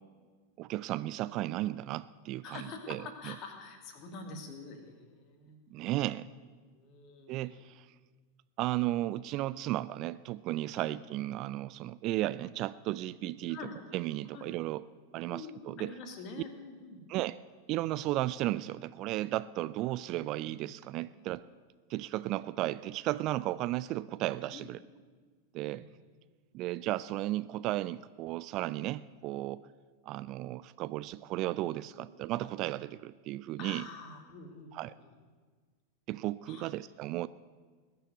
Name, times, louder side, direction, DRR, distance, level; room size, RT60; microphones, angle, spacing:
voice 1, 0.6-3.0 5.7-6.3 7.3-7.9 8.6-13.6 13.9-14.9 15.1-15.9 17.1-17.4 17.7-21.4 21.9-24.8 25.5-25.9 26.5-29.6 30.0-33.9 34.7-34.9 36.1-37.3, right 16 dB, 40° right, 17 dB, 0.4 m, -34 dB
voice 2, 2.4-5.6 6.7-7.6 10.8-10.9 13.5-13.7 14.3-14.5 15.3-17.0 24.5-24.7 25.6-25.9 31.9-32.1 33.6-35.1 36.4-36.6, left 4 dB, 35° left, 4 dB, 2.5 m, -46 dB
20.0 x 6.9 x 9.1 m, 1.5 s
figure-of-eight pair, 90°, 0 cm